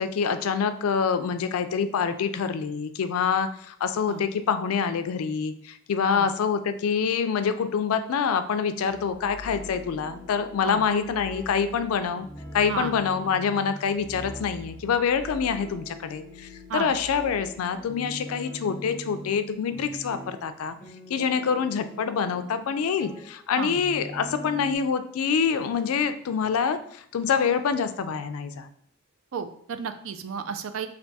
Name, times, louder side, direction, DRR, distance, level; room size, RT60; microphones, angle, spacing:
voice 1, 0.0-12.3 12.5-20.8 21.1-28.7, left 6 dB, 85° left, 10 dB, 0.4 m, -26 dB
sound 1, 8.8-24.7, left 1 dB, 5° left, 0.6 m, -43 dB
voice 2, 29.3-30.9, right 6 dB, 70° right, 10 dB, 0.4 m, -33 dB
3.4 x 2.6 x 4.0 m, 0.64 s
head